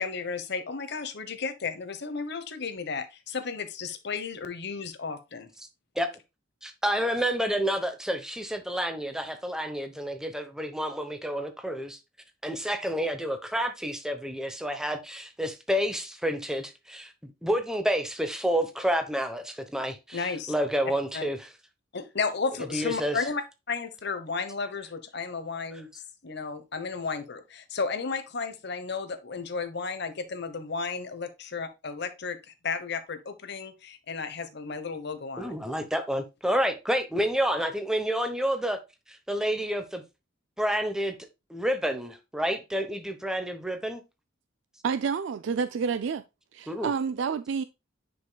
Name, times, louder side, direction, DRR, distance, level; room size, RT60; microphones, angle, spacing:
voice 1, 0.0-5.5 20.1-20.5 21.1-21.3 21.9-25.9 26.2-32.4 32.6-35.6, left 5 dB, 55° left, 1.0 m, -33 dB
voice 2, 6.6-12.0 12.4-21.5 22.7-23.2 35.4-38.8 39.1-40.0 40.6-41.2 41.5-44.0 46.7-46.9, equal, 5° right, 0.9 m, -29 dB
voice 3, 44.8-46.2 46.5-47.6, right 6 dB, 60° right, 0.3 m, -29 dB
9.9 x 5.2 x 2.2 m
head